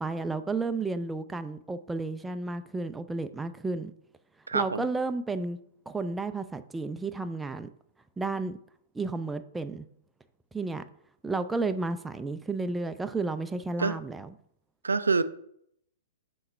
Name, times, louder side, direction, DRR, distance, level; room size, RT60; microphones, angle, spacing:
voice 1, 0.0-3.9 4.5-5.6 5.9-7.7 8.2-8.6 8.9-9.8 10.5-10.8 11.2-14.3, right 3 dB, 10° right, 9 dB, 0.4 m, -32 dB
voice 2, 4.5-4.9 13.8-14.0 14.8-15.2, right 4 dB, 80° right, 13 dB, 0.4 m, -26 dB
5.7 x 3.0 x 5.4 m, 0.70 s
figure-of-eight pair, 115°, 0 cm